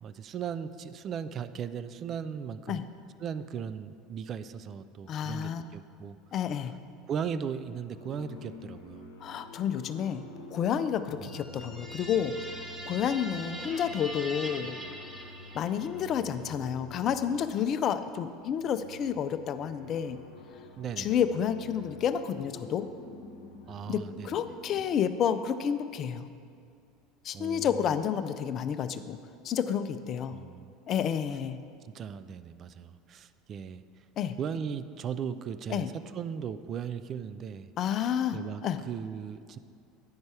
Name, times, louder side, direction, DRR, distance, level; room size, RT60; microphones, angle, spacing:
voice 1, 0.0-2.9 3.2-6.2 7.1-9.1 11.2-11.4 20.8-21.2 23.7-24.4 27.3-28.0 30.3-30.7 31.8-33.8 34.4-37.7 38.0-39.6, right 7 dB, 40° right, 12 dB, 0.3 m, -37 dB
voice 2, 5.1-5.8 6.3-6.7 9.2-10.2 10.5-12.4 12.9-14.8 15.5-20.2 21.0-22.9 23.9-26.3 27.2-29.2 29.4-30.4 30.9-31.6 34.2-34.4 35.7-35.9 37.8-38.8, left 8 dB, 45° left, 11 dB, 0.4 m, -30 dB
sound 1, 7.8-17.9 18.4-25.0, left 2 dB, 80° left, 0.8 m, -48 dB
sound 2, 11.2-16.0, right 1 dB, 10° right, 1.4 m, -42 dB
9.5 x 5.3 x 4.5 m, 2.3 s
figure-of-eight pair, 70°, 0 cm